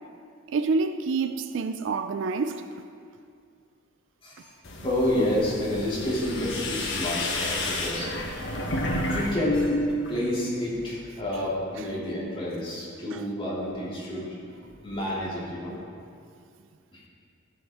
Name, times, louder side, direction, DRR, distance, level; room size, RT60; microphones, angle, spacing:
voice 1, 0.5-2.6 8.5-8.6 13.1-13.2, right 4 dB, 60° right, 0.4 m, -27 dB
voice 2, 4.2-4.5 4.8-8.1 9.1-15.8 16.9-17.0, left 1 dB, 25° left, 2.8 m, -29 dB
sound 1, 4.6-9.3 9.6-10.3, left 1 dB, 60° left, 1.2 m, -31 dB
13.5 x 7.8 x 3.6 m
head